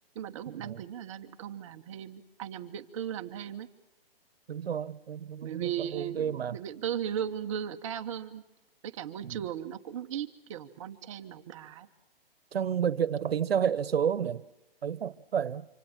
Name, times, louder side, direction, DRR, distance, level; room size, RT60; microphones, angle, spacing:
voice 1, 0.1-3.7 5.4-8.4 8.8-11.9, right 9 dB, 30° right, 1.3 m, -37 dB
voice 2, 4.5-6.6 9.2-9.4 12.5-14.4 14.8-15.7, right 8 dB, 75° right, 1.2 m, -30 dB
26.5 x 26.0 x 5.9 m
hypercardioid pair, 160°, 30 cm